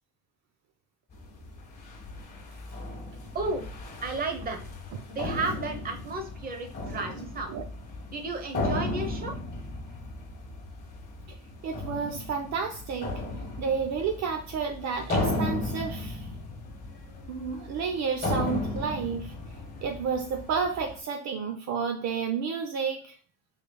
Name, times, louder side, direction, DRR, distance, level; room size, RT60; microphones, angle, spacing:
sound 1, 1.1-21.0, left 2 dB, 30° left, 1.4 m, -35 dB
voice 1, 3.3-3.6 4.0-4.7 5.1-7.5 8.1-9.4, right 3 dB, 30° right, 5 dB, 1.0 m, -33 dB
voice 2, 11.6-13.2 13.6-16.3 17.3-19.3 19.8-23.1, right 6 dB, 55° right, 5 dB, 0.7 m, -31 dB
5.0 x 4.0 x 2.3 m, 0.40 s
cardioid pair, 130°, 32 cm